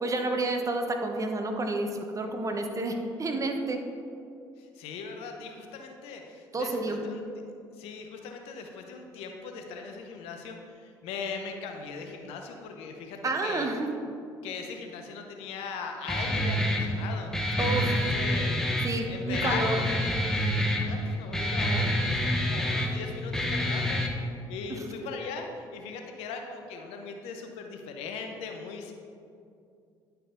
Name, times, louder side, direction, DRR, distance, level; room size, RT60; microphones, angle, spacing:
voice 1, 0.0-3.8 6.5-7.0 13.2-13.9 17.6-17.9 18.8-19.8, right 2 dB, 35° right, 4 dB, 1.0 m, -30 dB
voice 2, 4.6-7.2 7.7-13.7 14.4-24.0 24.3-28.9, left 5 dB, 75° left, 4 dB, 0.9 m, -39 dB
Guitar, 16.1-24.1, equal, 5° left, 1.0 m, -27 dB
10.5 x 4.5 x 3.8 m, 2.4 s
supercardioid pair, 65°, 10 cm